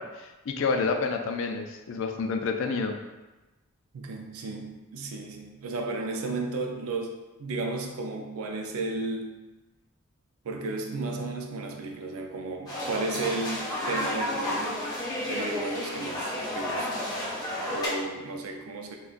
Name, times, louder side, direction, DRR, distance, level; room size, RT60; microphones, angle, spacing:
voice 1, 0.0-3.0, left 4 dB, 60° left, 4 dB, 0.3 m, -29 dB
voice 2, 3.9-9.4 10.4-14.9 15.3-17.0 17.7-19.0, right 2 dB, 85° right, 3 dB, 0.4 m, -33 dB
sound 1, 12.7-17.9, left 1 dB, 20° left, 0.6 m, -32 dB
2.5 x 2.2 x 3.7 m, 1.1 s
head